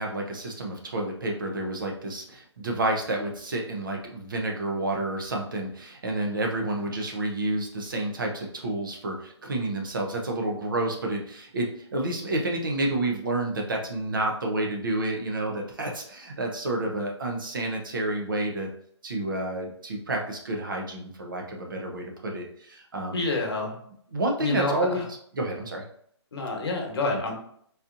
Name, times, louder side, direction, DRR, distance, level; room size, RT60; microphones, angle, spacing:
voice 1, 0.0-18.7 19.0-23.2 24.1-25.0 25.3-25.8, right 2 dB, 45° right, 1 dB, 0.7 m, -29 dB
voice 2, 23.1-23.7 24.4-25.0 26.3-27.3, left 2 dB, 60° left, 0 dB, 1.1 m, -28 dB
4.1 x 2.7 x 2.5 m, 0.65 s
hypercardioid pair, 175°, 15 cm